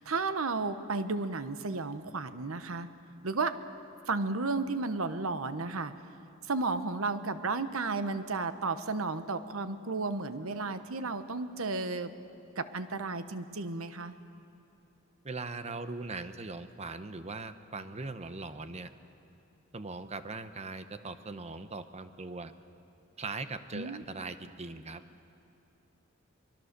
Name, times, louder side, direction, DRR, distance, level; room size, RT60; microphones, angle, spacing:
voice 1, 0.0-2.9 3.2-3.5 4.1-5.9 6.5-12.1 12.6-14.1 23.7-24.0, right 3 dB, 85° right, 11 dB, 1.0 m, -33 dB
voice 2, 15.2-18.9 19.7-22.5 23.2-25.0, right 3 dB, 30° right, 10 dB, 0.9 m, -40 dB
24.0 x 21.0 x 6.7 m, 2.9 s
head